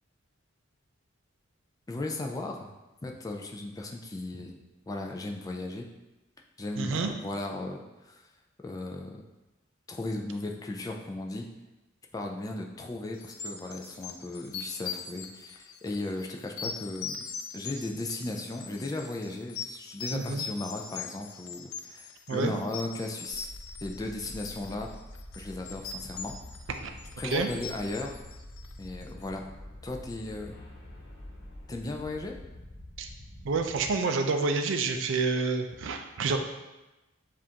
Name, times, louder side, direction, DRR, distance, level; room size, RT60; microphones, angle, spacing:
voice 1, 1.9-2.7 3.0-4.5 4.9-5.9 6.6-8.2 8.6-9.2 9.9-11.5 12.1-17.2 17.5-23.5 23.8-24.9 25.3-26.3 27.2-28.2 28.8-29.5 29.8-30.5 31.7-32.4, left 2 dB, 15° left, 2 dB, 0.3 m, -36 dB
voice 2, 6.8-7.1 20.1-20.4 22.3-22.5 26.8-26.9 27.2-27.5 33.0-33.1 33.4-36.4, right 4 dB, 60° right, 6 dB, 0.4 m, -28 dB
sound 1, 13.2-29.0, left 6 dB, 85° left, 0.4 m, -41 dB
sound 2, 23.3-33.9, left 1 dB, 60° left, 1.2 m, -46 dB
7.1 x 2.5 x 2.8 m, 1.0 s
head